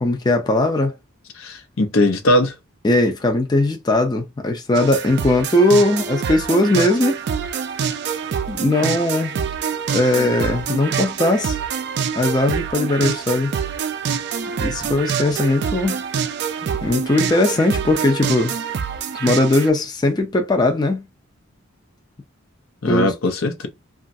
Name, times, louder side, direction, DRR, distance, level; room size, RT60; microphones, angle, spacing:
voice 1, 0.0-0.9 2.8-7.2 8.5-9.5 9.9-11.6 12.2-13.5 14.5-16.0 16.6-18.5 19.2-21.1 22.9-23.1, left 2 dB, 20° left, 0.4 m, -19 dB
voice 2, 1.4-2.5 22.8-23.7, left 1 dB, 80° left, 0.7 m, -19 dB
sound 1, 4.7-19.7, right 7 dB, 55° right, 0.3 m, -26 dB
3.0 x 2.4 x 2.6 m
head